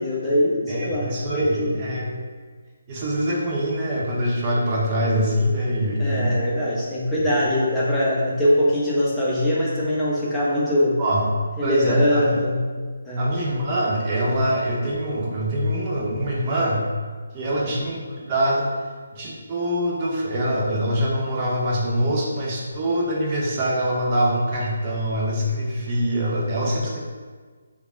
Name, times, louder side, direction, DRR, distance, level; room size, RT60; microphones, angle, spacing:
voice 1, 0.0-1.8 6.0-11.0 11.6-12.6 13.1-13.3 17.5-17.7, left 1 dB, 5° left, -10 dB, 0.8 m, -22 dB
voice 2, 0.7-2.1 2.9-6.3 11.0-11.2 11.6-12.4 13.2-16.9 17.3-18.7 19.1-27.0, equal, 30° right, -3 dB, 0.6 m, -24 dB
3.3 x 2.3 x 3.4 m, 1.5 s
figure-of-eight pair, 150°, 0 cm